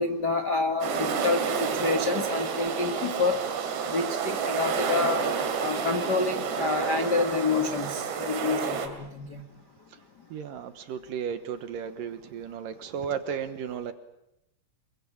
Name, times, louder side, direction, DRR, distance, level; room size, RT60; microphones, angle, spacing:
voice 1, 0.0-3.4 3.8-5.2 5.6-9.4, left 4 dB, 70° left, 6 dB, 0.9 m, -28 dB
sound 1, 0.8-8.9, right 6 dB, 80° right, 4.9 m, -29 dB
voice 2, 10.3-13.9, right 7 dB, 65° right, 10 dB, 2.4 m, -34 dB
27.0 x 23.0 x 8.7 m, 0.86 s
omnidirectional pair, 4.9 m